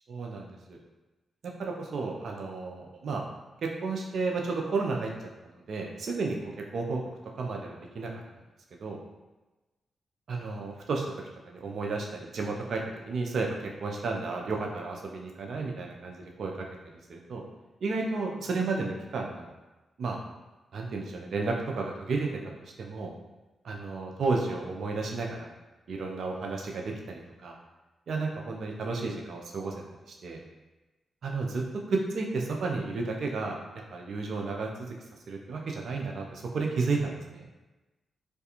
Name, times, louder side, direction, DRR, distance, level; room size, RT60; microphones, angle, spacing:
voice 1, 0.1-0.8 1.6-3.2 3.6-7.0 7.3-8.1 8.8-9.0 10.3-11.1 11.4-12.8 13.1-16.6 17.1-17.4 17.8-19.5 20.0-20.2 20.7-22.3 22.8-23.1 23.6-25.5 25.9-27.6 28.1-29.7 30.1-30.4 31.2-31.6 31.9-34.9 35.3-37.5, right 3 dB, 70° right, 0 dB, 0.4 m, -32 dB
2.4 x 2.2 x 2.8 m, 1.1 s
supercardioid pair, 45°, 0 cm